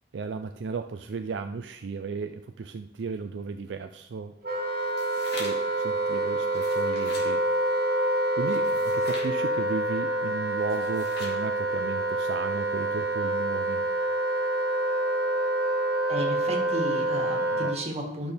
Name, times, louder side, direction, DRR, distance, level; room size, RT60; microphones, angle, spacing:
voice 1, 0.1-4.4 5.3-7.4 8.4-13.9 17.5-17.7, right 4 dB, 75° right, 6 dB, 0.4 m, -35 dB
Wind instrument woodwind instrument, 4.4-17.8, right 1 dB, 55° right, 1.4 m, -27 dB
sound 1, 4.8-5.7 6.4-7.3 8.5-9.3 10.6-11.4, left 2 dB, 60° left, 2.2 m, -42 dB
voice 2, 16.1-18.3, right 1 dB, 35° right, 0 dB, 1.7 m, -33 dB
12.0 x 6.0 x 3.4 m, 0.81 s
head